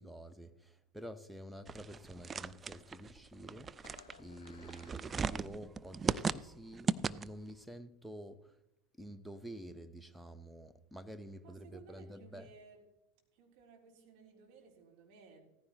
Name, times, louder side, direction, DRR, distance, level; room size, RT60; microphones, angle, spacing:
voice 1, 0.0-3.7 4.2-8.6 9.0-12.5, equal, ahead, 0.9 m, -49 dB
sound 1, 1.7-7.5, right 5 dB, 20° right, 0.4 m, -38 dB
Fireworks, 2.2-3.2 3.8-6.1, left 6 dB, 70° left, 0.9 m, -62 dB
voice 2, 11.4-12.8 13.3-15.4, right 5 dB, 50° right, 3.7 m, -58 dB
16.5 x 14.5 x 3.1 m
figure-of-eight pair, 80°, 0 cm